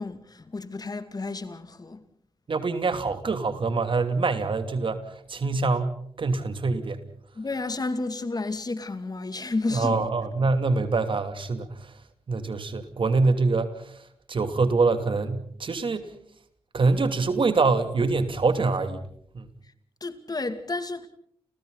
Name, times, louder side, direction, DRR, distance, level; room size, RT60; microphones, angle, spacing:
voice 1, 0.0-2.0 7.3-10.0 20.0-21.1, left 3 dB, 40° left, 2.5 m, -31 dB
voice 2, 2.5-7.0 9.7-12.0 12.3-14.0 14.3-16.1 16.7-19.0 19.3-19.5, right 3 dB, 55° right, 2.9 m, -25 dB
30.0 x 29.5 x 4.0 m
cardioid pair, 65°, 10 cm